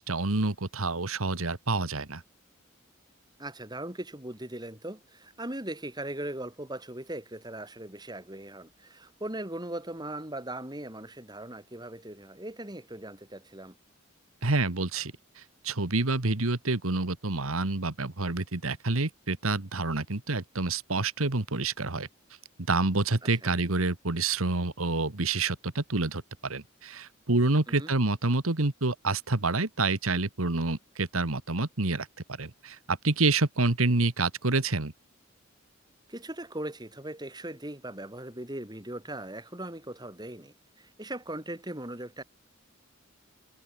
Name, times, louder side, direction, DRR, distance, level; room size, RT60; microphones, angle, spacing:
voice 1, 0.0-2.2 14.4-22.1 22.7-34.9, right 3 dB, 90° right, 1.8 m, -28 dB
voice 2, 3.4-13.8 23.4-23.5 27.7-27.9 36.1-42.2, right 1 dB, 20° right, 3.5 m, -39 dB
head